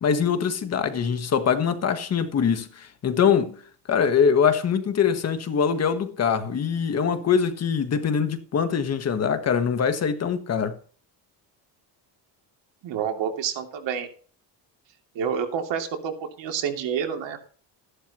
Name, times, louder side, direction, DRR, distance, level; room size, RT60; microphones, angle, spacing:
voice 1, 0.0-3.6 3.9-10.8, left 7 dB, 35° left, 1.3 m, -23 dB
voice 2, 12.8-14.1 15.1-17.4, right 7 dB, 80° right, 2.9 m, -28 dB
14.5 x 11.5 x 3.0 m
cardioid pair, 175°, 44 cm